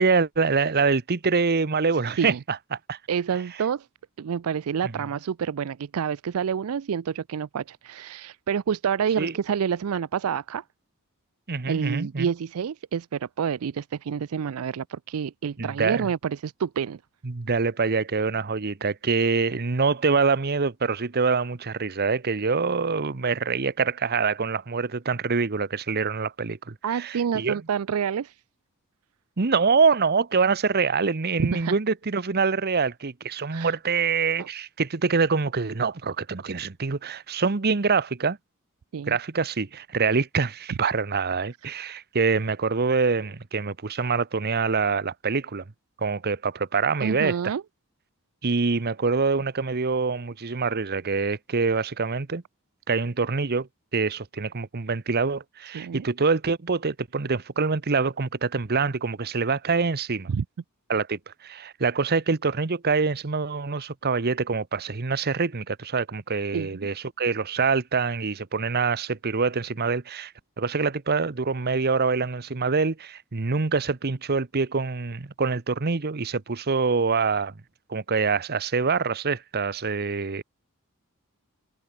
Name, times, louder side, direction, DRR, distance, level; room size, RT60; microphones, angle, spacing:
voice 1, 0.0-3.0 4.8-4.9 9.2-9.3 11.5-12.3 15.6-16.1 17.2-27.6 29.4-38.4 39.1-45.6 46.0-47.5 48.4-52.4 52.9-60.3 60.9-77.6 77.9-80.4, right 4 dB, 45° right, 0.9 m, -25 dB
voice 2, 3.1-3.9 4.2-10.6 11.7-17.0 26.8-28.3 31.4-31.7 33.5-33.8 34.4-34.5 38.9-39.2 47.0-47.6 55.7-56.0 60.3-60.4 66.5-66.7, right 7 dB, 70° right, 0.4 m, -28 dB
head